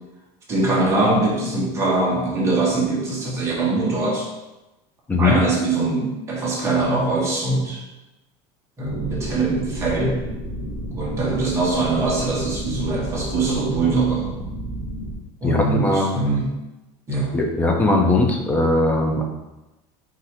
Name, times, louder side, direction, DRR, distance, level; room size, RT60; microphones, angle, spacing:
voice 1, 0.5-4.3 5.2-7.8 8.8-10.2 10.9-14.3 15.4-16.5 17.1-17.4, right 3 dB, 15° right, -4 dB, 1.0 m, -22 dB
sound 1, 8.8-15.1, right 1 dB, 65° left, 1.1 m, -31 dB
voice 2, 15.4-16.1 17.3-19.2, left 2 dB, 10° left, 2 dB, 0.4 m, -19 dB
4.0 x 2.5 x 4.1 m, 1.0 s
cardioid pair, 165°, 15 cm